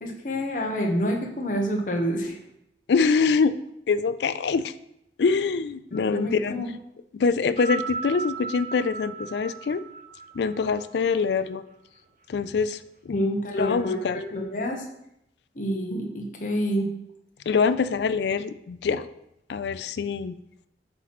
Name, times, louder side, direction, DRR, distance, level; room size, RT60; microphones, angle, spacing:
voice 1, 0.0-2.4 5.9-6.7 13.1-14.8 15.6-16.9, equal, 45° left, 2 dB, 1.1 m, -28 dB
voice 2, 2.9-3.5 3.9-4.7 5.2-6.6 7.1-9.8 10.3-11.6 12.3-12.8 13.1-13.3 13.6-14.2 17.5-19.1 19.5-20.3, left 5 dB, 70° left, 13 dB, 0.4 m, -24 dB
sound 1, 7.4-12.0 12.9-13.0, right 5 dB, 50° right, 0.9 m, -36 dB
7.7 x 3.2 x 5.9 m, 0.80 s
head